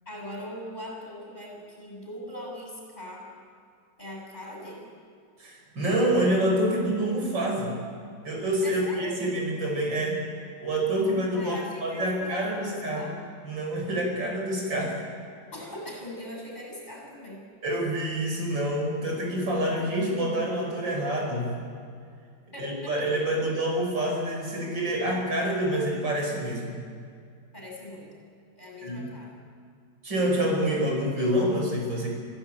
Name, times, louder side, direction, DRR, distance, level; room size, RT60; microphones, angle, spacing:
voice 1, 0.1-3.3 4.0-4.9 8.6-9.2 11.4-13.1 15.5-17.4 22.5-23.2 27.5-28.1 28.6-29.4, left 1 dB, 20° left, -1 dB, 7.5 m, -40 dB
voice 2, 5.4-7.7 8.2-10.2 10.6-13.1 13.4-15.0 17.6-21.6 22.6-26.8 28.8-29.0 30.0-32.1, right 1 dB, 85° right, 0 dB, 5.9 m, -27 dB
27.5 x 15.5 x 8.9 m, 2.3 s
omnidirectional pair, 2.0 m